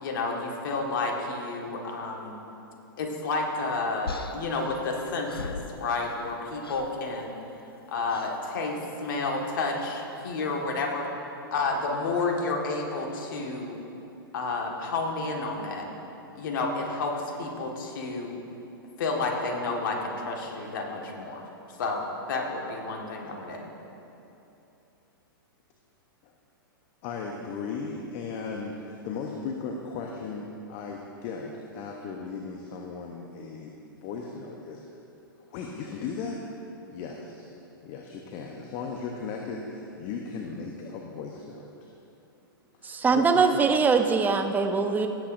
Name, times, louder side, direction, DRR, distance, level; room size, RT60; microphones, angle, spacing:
voice 1, 0.0-2.4 3.0-7.3 7.9-11.1 11.5-13.8 14.3-15.9 16.4-18.4 19.0-21.4 21.8-23.7, left 3 dB, 60° left, 1 dB, 1.6 m, -30 dB
sound 1, 4.1-6.3 6.6-7.0 8.1-8.4 9.7-10.0, left 4 dB, 90° left, 0.6 m, -40 dB
voice 2, 27.0-33.7 34.0-34.8 35.5-36.4 36.9-37.5 37.8-41.7 42.8-43.6, left 5 dB, 40° left, 1 dB, 0.9 m, -36 dB
voice 3, 42.8-45.1, right 5 dB, 15° right, 6 dB, 0.6 m, -22 dB
17.5 x 8.4 x 2.6 m, 2.9 s
hypercardioid pair, 110°, 12 cm